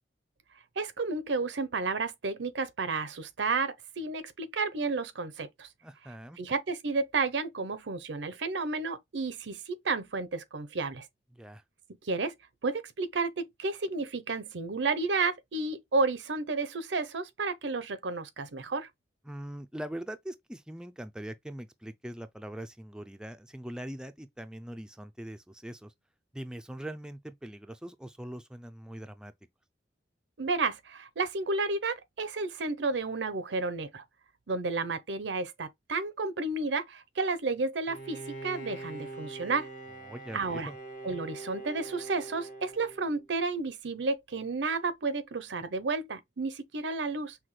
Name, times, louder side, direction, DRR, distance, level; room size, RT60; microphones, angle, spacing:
voice 1, 0.8-5.7 6.4-11.0 12.0-12.3 12.6-18.9 30.4-34.0 34.5-39.7 40.3-40.7 41.0-47.4, right 3 dB, 85° right, 0.7 m, -32 dB
voice 2, 5.8-6.4 11.3-11.6 19.3-25.9 26.3-29.3 40.0-40.8, right 1 dB, 5° right, 0.4 m, -42 dB
Bowed string instrument, 37.9-43.4, right 2 dB, 50° left, 0.9 m, -43 dB
5.8 x 2.3 x 3.1 m
head